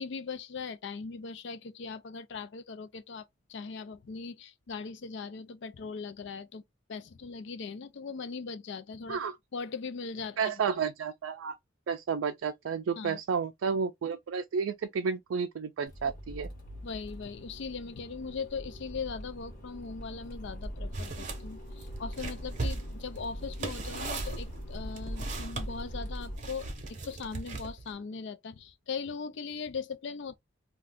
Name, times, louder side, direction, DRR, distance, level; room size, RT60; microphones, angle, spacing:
voice 1, 0.0-6.6 6.9-9.2 9.5-10.6 12.9-13.2 16.8-30.4, left 5 dB, 65° left, 0.4 m, -39 dB
voice 2, 10.4-11.6 11.9-16.5, right 6 dB, 80° right, 0.4 m, -31 dB
Accelerating revving vroom, 15.9-26.4, equal, 45° left, 1.0 m, -41 dB
sound 1, 20.9-21.4 21.8-25.7 26.4-27.9, right 3 dB, 40° right, 0.8 m, -38 dB
2.5 x 2.3 x 3.5 m
head